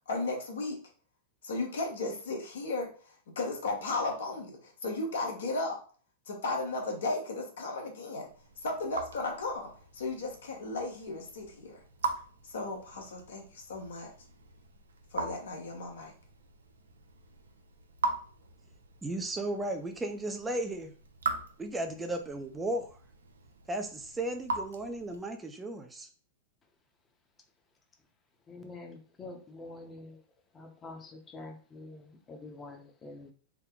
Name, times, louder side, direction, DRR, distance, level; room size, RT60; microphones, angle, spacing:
voice 1, 0.1-0.8 1.4-2.9 3.4-5.8 6.3-8.3 8.6-11.8 12.4-14.1 15.1-16.1, left 2 dB, 75° left, 1 dB, 1.1 m, -35 dB
Raindrop / Drip, 8.2-25.4, right 4 dB, 85° right, 0.6 m, -41 dB
voice 2, 19.0-20.9 21.6-22.9 23.7-26.1, right 1 dB, 15° right, 5 dB, 0.5 m, -35 dB
voice 3, 28.5-30.2 30.5-33.3, left 2 dB, 25° left, 4 dB, 0.8 m, -46 dB
3.5 x 2.1 x 3.8 m, 0.41 s
hypercardioid pair, 105°, 0 cm